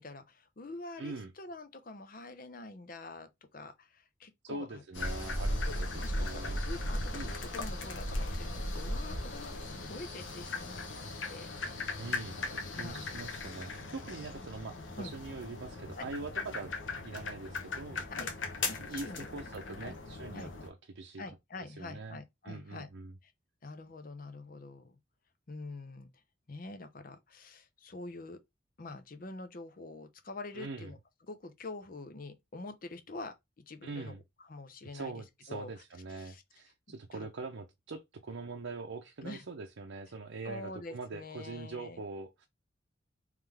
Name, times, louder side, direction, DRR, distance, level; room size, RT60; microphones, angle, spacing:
voice 1, 0.0-5.3 5.7-11.5 12.7-13.1 15.0-15.1 18.1-18.3 18.7-19.3 19.8-19.9 20.3-20.5 21.2-22.9 23.2-23.3 23.6-25.0 25.5-26.1 26.5-28.4 28.8-31.0 31.3-33.3 33.7-34.1 34.4-35.7 36.1-36.4 37.1-37.3 39.2-39.4 40.4-42.0, left 2 dB, 45° left, 0.7 m, -46 dB
voice 2, 1.0-1.3 4.4-5.6 5.9-6.6 7.1-7.3 12.0-18.1 18.8-21.2 21.7-22.2 22.4-23.1 30.5-30.9 33.8-34.2 34.9-42.5, right 3 dB, 85° right, 0.6 m, -43 dB
sound 1, 4.9-20.7, left 2 dB, 85° left, 1.1 m, -38 dB
3.6 x 3.2 x 3.3 m
head